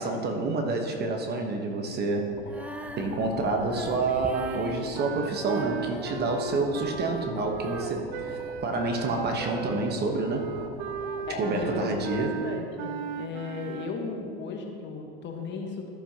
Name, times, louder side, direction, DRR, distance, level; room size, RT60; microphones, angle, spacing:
voice 1, 0.0-2.7 3.0-10.5 11.4-12.4, right 3 dB, 35° right, 3 dB, 1.2 m, -28 dB
sound 1, 2.3-12.3, left 4 dB, 70° left, 1.1 m, -46 dB
Female singing, 2.4-9.5, right 1 dB, 5° right, 0.5 m, -43 dB
sound 2, 4.3-14.0, right 7 dB, 55° right, 0.6 m, -36 dB
voice 2, 11.3-15.9, left 4 dB, 35° left, 2 dB, 1.3 m, -36 dB
13.5 x 7.1 x 2.9 m, 2.3 s
hypercardioid pair, 100°, 30 cm